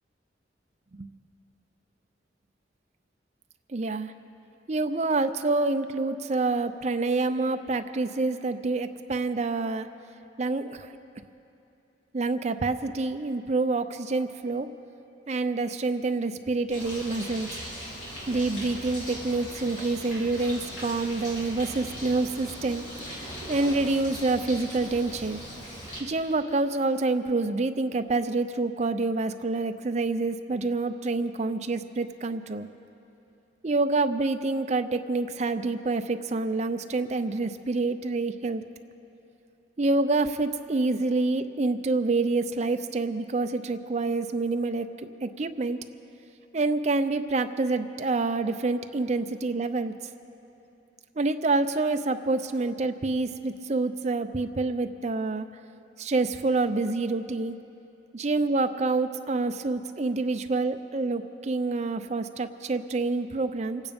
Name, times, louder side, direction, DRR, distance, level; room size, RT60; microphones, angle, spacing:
voice 1, 3.7-4.1 4.7-9.9 10.4-10.9 12.1-14.7 15.3-17.5 18.3-22.8 23.5-25.4 26.0-32.7 33.6-38.6 39.8-44.9 45.2-45.8 46.5-49.9 51.2-55.5 56.0-57.6 58.2-63.8, right 3 dB, 35° right, 8 dB, 0.5 m, -27 dB
Bird, 16.7-26.0, equal, 80° left, 4.3 m, -39 dB
25.5 x 9.1 x 5.3 m, 2.8 s
head